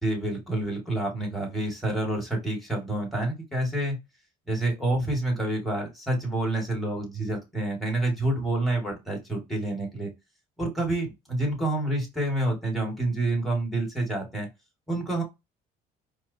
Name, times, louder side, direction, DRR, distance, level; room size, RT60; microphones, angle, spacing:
voice 1, 0.0-4.0 4.5-10.1 10.6-14.5 14.9-15.2, right 2 dB, ahead, 0 dB, 2.1 m, -28 dB
4.6 x 2.4 x 2.8 m, 0.22 s
cardioid pair, 110°, 17 cm